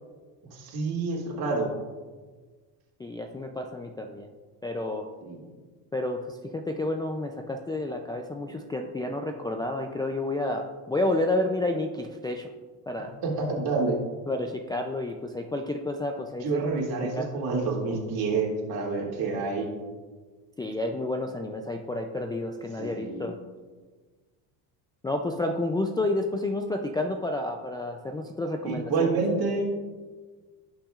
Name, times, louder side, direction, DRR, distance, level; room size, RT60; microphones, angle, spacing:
voice 1, 0.5-1.7 5.2-5.5 13.2-14.0 16.4-19.7 22.8-23.3 28.6-29.7, right 4 dB, 60° right, -2 dB, 2.4 m, -28 dB
voice 2, 3.0-4.3 4.6-5.1 5.9-12.5 12.9-13.1 14.3-16.6 17.0-17.4 20.6-23.4 25.0-28.8, left 2 dB, 10° left, 1 dB, 0.3 m, -30 dB
17.0 x 5.9 x 2.4 m, 1.4 s
cardioid pair, 130°, 42 cm